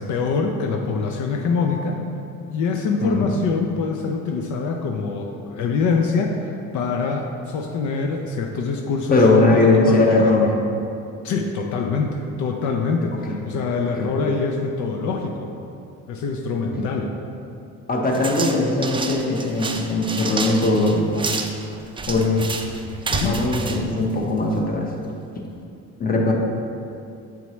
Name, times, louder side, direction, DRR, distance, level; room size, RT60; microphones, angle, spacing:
voice 1, 0.0-2.0 2.5-10.3 11.2-15.5 16.1-17.1 23.1-23.4, left 4 dB, 70° left, 2 dB, 0.6 m, -24 dB
voice 2, 3.0-3.3 9.1-10.6 13.2-13.4 13.9-14.1 16.8-16.9 17.9-21.3 22.1-22.4 23.2-24.9 26.0-26.3, left 2 dB, 30° left, 0 dB, 0.9 m, -19 dB
sound 1, 18.1-24.7, right 3 dB, 15° right, 0.4 m, -30 dB
7.0 x 4.4 x 3.1 m, 2.6 s
cardioid pair, 100°, 31 cm